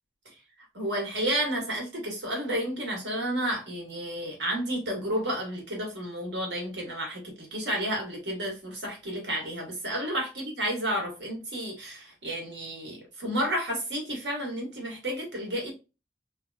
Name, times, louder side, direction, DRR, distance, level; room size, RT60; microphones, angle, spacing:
voice 1, 0.7-15.7, right 1 dB, 75° right, 0 dB, 1.6 m, -31 dB
3.1 x 2.9 x 2.3 m, 0.28 s
head